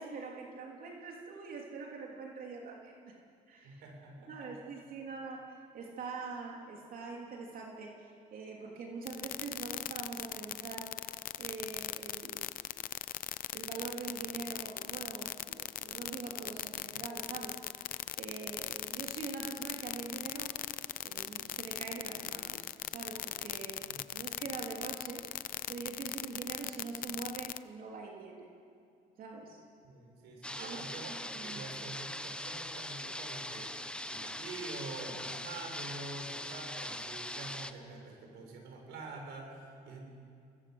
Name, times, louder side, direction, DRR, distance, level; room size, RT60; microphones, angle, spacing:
voice 1, 0.0-3.2 3.5-3.8 4.3-10.9 11.4-12.6 13.5-17.9 18.2-20.6 21.0-23.9 24.1-25.2 25.7-28.5 29.2-29.6 30.6-30.8 31.1-31.7, right 4 dB, 60° right, 0 dB, 3.1 m, -44 dB
voice 2, 3.6-4.5 23.9-24.0 29.8-40.0, right 3 dB, 80° right, 2 dB, 7.0 m, -46 dB
sound 1, 9.1-27.6, left 12 dB, 55° left, 0.7 m, -38 dB
sound 2, 30.4-37.7, left 1 dB, 5° left, 1.1 m, -41 dB
28.0 x 19.5 x 7.9 m, 2.4 s
cardioid pair, 110°, 17 cm